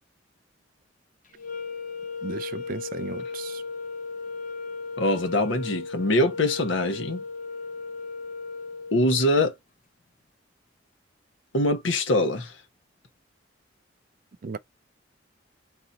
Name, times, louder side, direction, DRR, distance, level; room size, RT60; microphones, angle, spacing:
sound 1, 1.4-9.6, left 4 dB, 40° left, 0.8 m, -36 dB
voice 1, 2.2-3.6 14.4-14.6, right 4 dB, 45° right, 0.4 m, -35 dB
voice 2, 5.0-7.2 8.9-9.6 11.5-12.5, left 1 dB, 75° left, 1.0 m, -23 dB
3.9 x 2.8 x 3.9 m
head